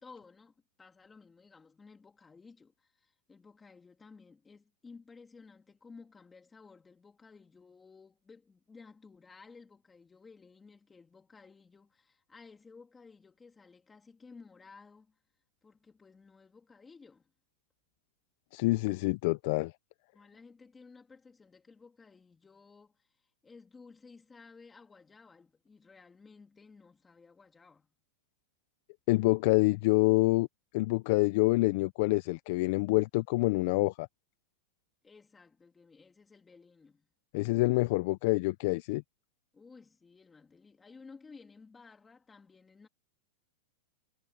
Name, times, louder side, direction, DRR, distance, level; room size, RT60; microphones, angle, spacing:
voice 1, 0.0-15.1 15.6-17.3 20.1-23.2 23.4-27.9 35.0-37.1 39.5-42.9, left 4 dB, 15° left, 3.1 m, -56 dB
voice 2, 18.5-19.7 29.1-30.5 30.7-34.1 37.3-39.0, left 22 dB, 55° left, 0.4 m, -27 dB
supercardioid pair, 140°, 0 cm